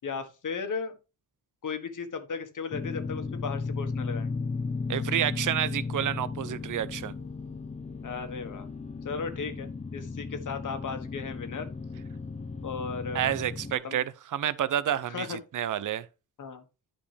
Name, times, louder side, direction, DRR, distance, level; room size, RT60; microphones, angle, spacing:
voice 1, 0.0-1.0 1.6-4.3 8.0-8.7 9.0-11.7 12.6-13.3 13.8-14.0 15.1-15.4 16.4-16.6, left 5 dB, 50° left, 1.5 m, -36 dB
sound 1, 2.7-13.8, left 4 dB, 20° left, 0.7 m, -35 dB
voice 2, 4.9-7.1 13.1-16.1, right 11 dB, 50° right, 0.7 m, -29 dB
10.5 x 5.0 x 3.4 m
cardioid pair, 90°, 39 cm